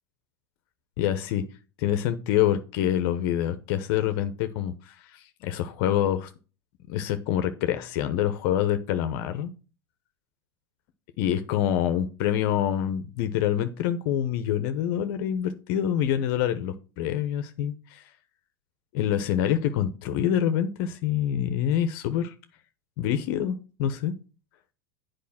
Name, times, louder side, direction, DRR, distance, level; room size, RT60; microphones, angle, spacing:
voice 1, 1.0-1.4 1.8-6.3 6.9-9.5 11.2-18.0 18.9-22.3 23.0-24.1, left 10 dB, 60° left, 9 dB, 0.9 m, -26 dB
8.5 x 5.1 x 5.8 m, 0.34 s
hypercardioid pair, 95°, 14 cm